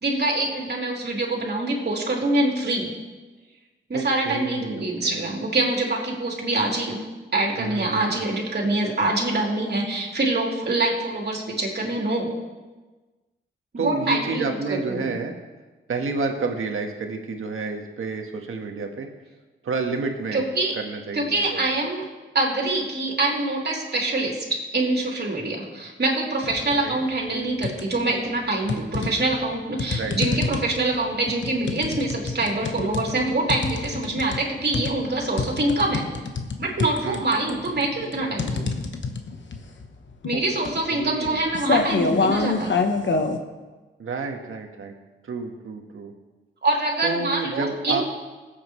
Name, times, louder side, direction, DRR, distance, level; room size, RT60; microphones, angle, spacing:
voice 1, 0.0-2.9 3.9-7.0 7.3-12.3 13.7-15.2 20.3-20.8 21.1-22.0 22.4-36.1 36.6-38.7 40.2-42.7 46.6-48.0, right 2 dB, 50° right, -2 dB, 3.3 m, -25 dB
voice 2, 3.9-5.3 7.6-8.2 13.8-15.3 15.9-19.1 19.6-20.4 20.8-21.7 26.8-27.0 29.9-30.4 37.0-37.3 40.3-40.4 40.9-41.4 44.0-44.9 45.3-46.1 47.0-48.0, right 4 dB, 80° right, 3 dB, 1.6 m, -30 dB
sound 1, 26.4-26.8 27.2-28.1 28.7-43.4, left 4 dB, 60° left, 1.2 m, -27 dB
20.5 x 8.5 x 3.3 m, 1.2 s
cardioid pair, 65°, 21 cm